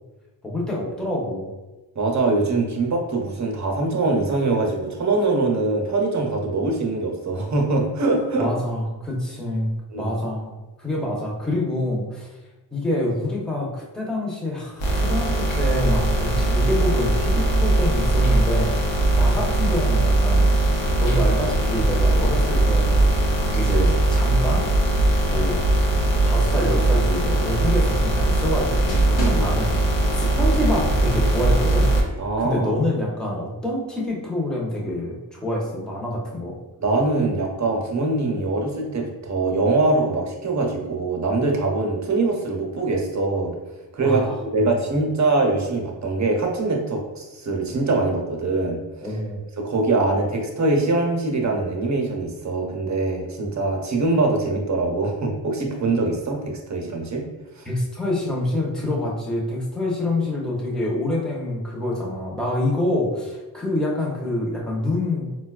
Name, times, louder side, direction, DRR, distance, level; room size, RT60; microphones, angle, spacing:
voice 1, 0.4-1.5 8.3-12.3 12.7-20.5 21.0-23.0 23.5-24.7 25.3-25.7 26.2-29.8 30.1-31.9 32.4-36.6 44.0-44.7 49.0-49.5 57.6-65.3, left 1 dB, ahead, -4 dB, 0.8 m, -26 dB
voice 2, 2.0-8.5 9.9-10.1 29.2-29.6 32.2-32.7 36.8-43.6 43.9-48.8 49.6-57.3 57.6-57.7, right 2 dB, 40° right, 1 dB, 0.8 m, -23 dB
sound 1, 14.8-32.0, right 2 dB, 80° left, 0.8 m, -20 dB
3.9 x 2.3 x 2.4 m, 1.1 s
cardioid pair, 50°, 46 cm